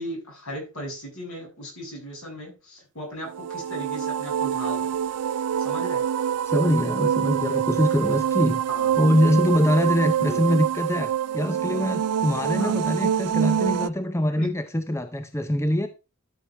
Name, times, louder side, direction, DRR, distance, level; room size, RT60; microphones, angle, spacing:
voice 1, 0.0-5.0 5.6-6.0 8.7-9.0 10.2-10.6 12.6-12.8 14.3-14.5, equal, 65° left, 6.7 m, -37 dB
sound 1, 3.3-13.9, right 9 dB, 90° right, 0.4 m, -25 dB
voice 2, 6.4-8.6 9.0-15.9, left 1 dB, 15° left, 0.6 m, -23 dB
12.5 x 6.2 x 3.4 m
head